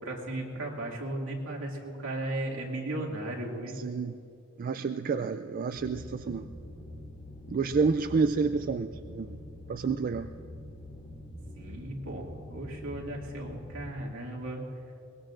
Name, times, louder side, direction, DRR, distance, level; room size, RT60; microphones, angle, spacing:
voice 1, 0.0-3.8 11.6-14.6, right 1 dB, 75° right, -2 dB, 2.4 m, -36 dB
voice 2, 3.7-4.2 4.6-6.5 7.5-9.4 9.7-10.3, right 5 dB, 45° right, 9 dB, 0.3 m, -29 dB
sound 1, 5.8-13.9, left 1 dB, 25° left, 2.5 m, -45 dB
23.0 x 19.5 x 2.6 m, 2.6 s
head